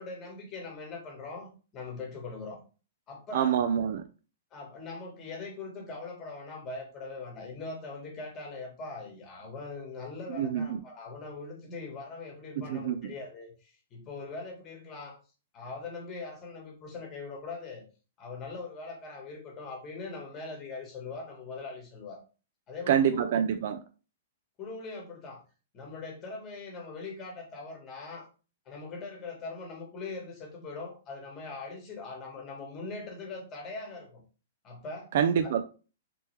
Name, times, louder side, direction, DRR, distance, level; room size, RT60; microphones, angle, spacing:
voice 1, 0.0-2.6 3.1-3.6 4.5-15.2 15.5-17.8 18.2-22.2 22.7-23.3 24.6-25.4 25.7-28.3 28.6-34.2 34.6-35.1 35.4-35.5, left 3 dB, 20° left, 1 dB, 1.2 m, -41 dB
voice 2, 3.3-4.0 10.3-10.8 12.6-13.1 22.9-23.8 35.1-35.6, right 8 dB, 55° right, 8 dB, 0.3 m, -26 dB
3.4 x 2.9 x 3.2 m, 0.35 s
hypercardioid pair, 160°, 0 cm